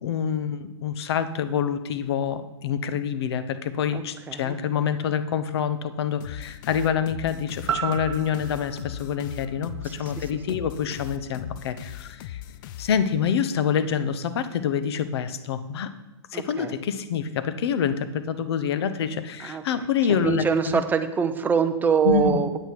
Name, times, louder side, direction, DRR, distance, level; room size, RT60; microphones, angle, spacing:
voice 1, 0.0-12.4 12.8-15.9 16.3-20.8 22.0-22.4, left 7 dB, 60° left, 11 dB, 0.8 m, -26 dB
voice 2, 3.9-4.6 9.8-9.9 16.3-16.8 19.4-19.6 20.1-22.6, right 7 dB, 10° right, 8 dB, 0.6 m, -24 dB
sound 1, 6.2-13.4, left 12 dB, 45° left, 0.4 m, -40 dB
sound 2, 7.7-11.8 12.2-12.3, right 9 dB, 75° right, 0.7 m, -35 dB
8.8 x 8.0 x 4.6 m, 1.0 s
hypercardioid pair, 125°, 15 cm